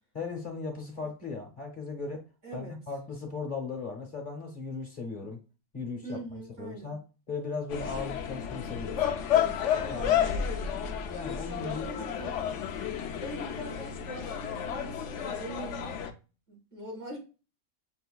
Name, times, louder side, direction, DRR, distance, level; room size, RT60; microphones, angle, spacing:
voice 1, 0.1-2.2 2.5-5.4 5.7-7.0 7.3-9.2 9.8-10.2 11.1-11.9, left 4 dB, 40° left, 2 dB, 1.1 m, -37 dB
voice 2, 2.4-2.7 6.0-6.9 9.3-9.6 10.2-10.7 11.6-12.6 13.2-16.0 16.5-17.2, right 1 dB, 90° right, -3 dB, 3.1 m, -42 dB
sound 1, 7.7-16.1, left 9 dB, 65° left, 0.9 m, -31 dB
7.4 x 2.7 x 2.3 m, 0.33 s
omnidirectional pair, 1.5 m